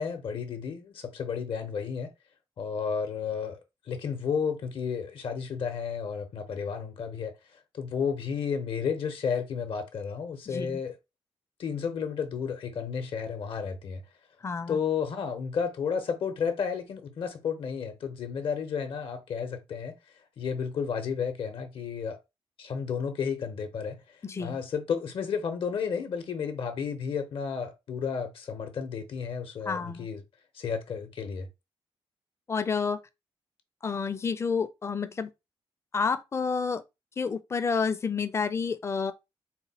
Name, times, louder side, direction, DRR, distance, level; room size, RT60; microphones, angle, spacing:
voice 1, 0.0-2.1 2.6-3.6 3.9-7.4 7.7-11.0 11.6-14.0 14.7-20.0 20.4-22.2 22.6-30.2 30.5-31.5, left 6 dB, 65° left, 0.7 m, -32 dB
voice 2, 10.5-10.8 14.4-14.8 24.2-24.6 29.7-30.1 32.5-33.0 33.8-35.3 35.9-36.8 37.2-39.1, left 5 dB, 30° left, 0.4 m, -29 dB
4.2 x 2.1 x 4.0 m
wide cardioid pair, 150°, 10 cm